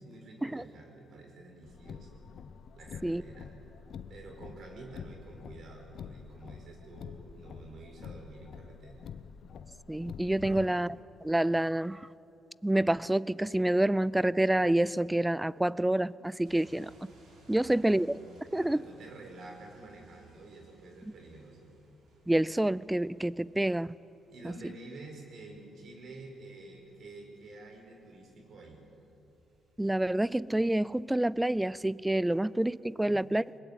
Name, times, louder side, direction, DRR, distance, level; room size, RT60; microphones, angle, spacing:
voice 1, 0.0-2.2 2.8-3.6 4.1-9.1 10.4-10.7 17.5-21.8 24.3-28.8 33.0-33.3, right 2 dB, 65° right, 2 dB, 5.3 m, -49 dB
Car, 1.6-10.6, left 7 dB, 65° left, 0.8 m, -47 dB
voice 2, 9.9-10.9 11.2-12.1 12.6-16.9 17.5-18.2 18.5-18.8 22.3-23.9 24.4-24.5 29.8-33.4, right 1 dB, 10° right, 21 dB, 0.4 m, -28 dB
sound 1, 16.4-32.2, right 2 dB, 80° right, 6.2 m, -64 dB
21.5 x 20.5 x 9.1 m, 3.0 s
cardioid pair, 90°, 0 cm